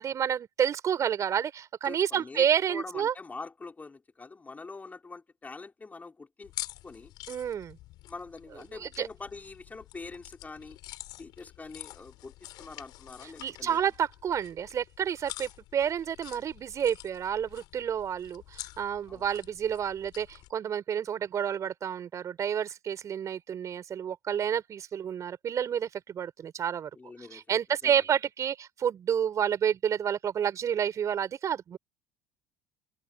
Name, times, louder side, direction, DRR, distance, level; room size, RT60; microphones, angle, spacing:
voice 1, 0.0-3.1 7.3-7.8 8.7-9.1 13.4-26.9 27.2-31.8, right 8 dB, 40° right, 4.6 m, -30 dB
voice 2, 1.8-6.5 6.8-7.1 8.1-10.8 11.2-13.8 19.1-19.2 26.9-27.4 27.8-27.9, left 3 dB, 20° left, 4.8 m, -44 dB
sound 1, 6.4-20.5, left 17 dB, 60° left, 7.0 m, -47 dB
open air
hypercardioid pair, 75°, 8 cm